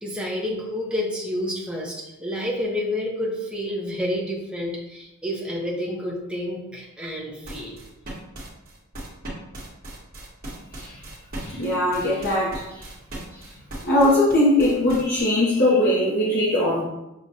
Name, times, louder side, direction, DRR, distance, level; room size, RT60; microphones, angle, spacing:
voice 1, 0.0-7.8, left 1 dB, 5° right, -3 dB, 0.6 m, -29 dB
sound 1, 7.4-15.2, right 1 dB, 40° right, 1.0 m, -37 dB
voice 2, 11.4-12.9 13.3-13.5 13.8-16.8, left 1 dB, 45° left, -6 dB, 0.6 m, -21 dB
6.3 x 2.1 x 2.6 m, 0.94 s
head